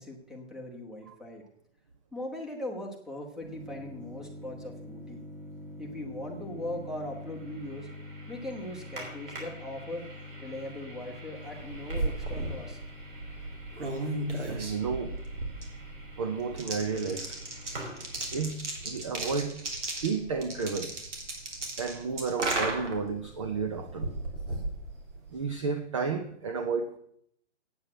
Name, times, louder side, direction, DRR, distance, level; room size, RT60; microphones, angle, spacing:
voice 1, 0.0-1.4 2.1-5.2 5.8-7.9 8.3-10.1 10.4-12.8, left 1 dB, ahead, 1 dB, 1.1 m, -40 dB
sound 1, 3.4-18.5, left 1 dB, 45° right, 5.0 m, -45 dB
sound 2, 11.5-25.5, right 2 dB, 70° right, 3.5 m, -36 dB
voice 2, 14.5-15.2 16.2-17.4 18.3-19.6 20.0-20.9 21.8-24.2 25.3-27.0, right 5 dB, 25° right, 8 dB, 0.5 m, -32 dB
9.0 x 8.2 x 7.6 m, 0.70 s
hypercardioid pair, 150°, 37 cm